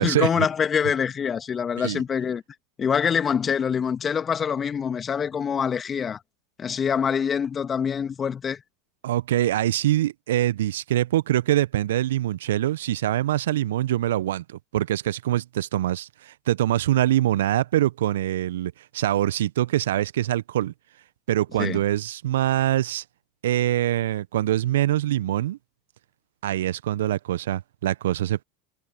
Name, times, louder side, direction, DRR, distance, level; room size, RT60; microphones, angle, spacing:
voice 1, 0.0-2.4 2.8-6.2 6.6-8.6 21.6-21.8, left 7 dB, 25° left, 2.3 m, -25 dB
voice 2, 9.0-20.7 21.3-23.0 23.4-25.6 26.4-28.4, right 13 dB, 70° right, 1.1 m, -24 dB
figure-of-eight pair, 85°, 0 cm